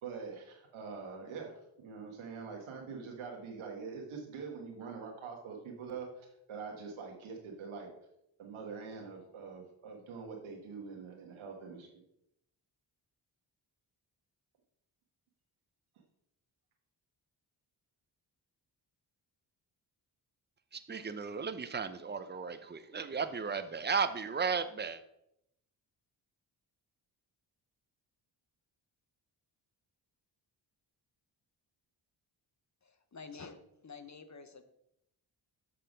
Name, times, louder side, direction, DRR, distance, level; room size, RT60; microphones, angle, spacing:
voice 1, 0.0-6.1 6.5-7.9 8.4-11.9, right 5 dB, 90° right, 1 dB, 1.6 m, -44 dB
voice 2, 20.7-25.0, right 5 dB, 20° right, 10 dB, 0.8 m, -35 dB
voice 3, 32.8-33.6 33.8-34.6, left 5 dB, 35° left, 9 dB, 1.1 m, -49 dB
6.6 x 5.7 x 5.3 m, 0.79 s
cardioid pair, 50°, 47 cm